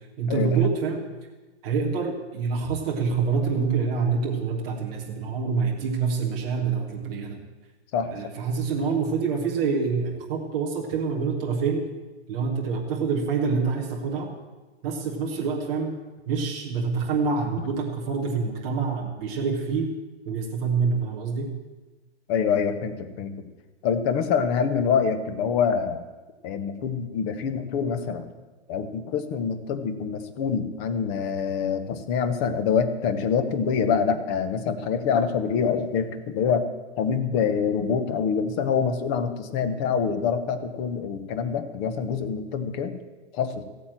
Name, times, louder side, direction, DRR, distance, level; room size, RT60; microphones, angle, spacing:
voice 1, 0.2-1.1 1.6-7.4 8.1-11.8 12.3-14.3 14.8-15.9 16.3-19.9 20.2-21.5, right 5 dB, 5° right, -2 dB, 0.3 m, -26 dB
voice 2, 22.3-23.5 23.8-26.0 26.4-28.3 28.7-36.7 37.0-43.0 43.3-43.6, left 6 dB, 25° left, 10 dB, 0.8 m, -25 dB
15.0 x 8.8 x 7.4 m, 1.2 s
hypercardioid pair, 160°, 34 cm